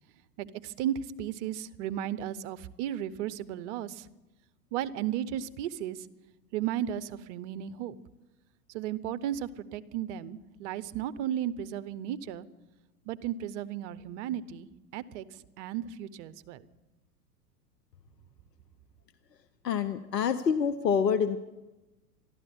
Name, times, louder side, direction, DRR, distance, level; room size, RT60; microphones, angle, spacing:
voice 1, 0.4-4.1 4.7-6.1 6.5-8.0 8.7-12.4 13.1-16.6, right 10 dB, 45° right, 14 dB, 0.9 m, -35 dB
voice 2, 19.6-21.4, left 7 dB, 80° left, 11 dB, 0.9 m, -26 dB
12.5 x 12.5 x 8.8 m, 1.0 s
figure-of-eight pair, 95°, 48 cm